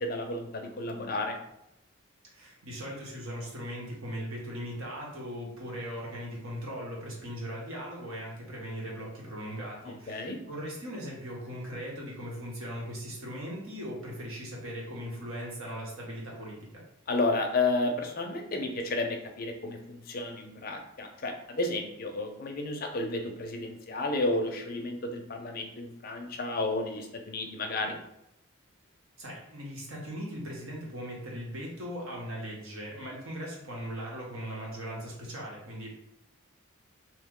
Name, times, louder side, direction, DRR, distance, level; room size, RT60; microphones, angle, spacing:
voice 1, 0.0-1.4 10.1-10.4 17.1-28.0, left 2 dB, 45° left, 4 dB, 0.4 m, -32 dB
voice 2, 2.2-16.8 29.2-35.9, equal, 75° right, -3 dB, 1.0 m, -39 dB
3.0 x 2.1 x 3.6 m, 0.82 s
head